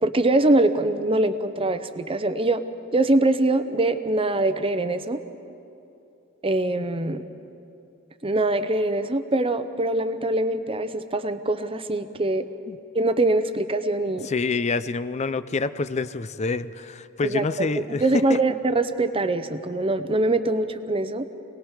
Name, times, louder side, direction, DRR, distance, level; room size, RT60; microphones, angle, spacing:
voice 1, 0.0-2.6 2.9-5.2 6.4-7.2 8.2-12.5 12.9-14.3 17.2-17.7 18.0-21.3, right 2 dB, 25° right, 10 dB, 0.8 m, -23 dB
voice 2, 14.2-18.4, left 3 dB, 35° left, 13 dB, 0.5 m, -27 dB
27.5 x 19.0 x 4.9 m, 2.8 s
head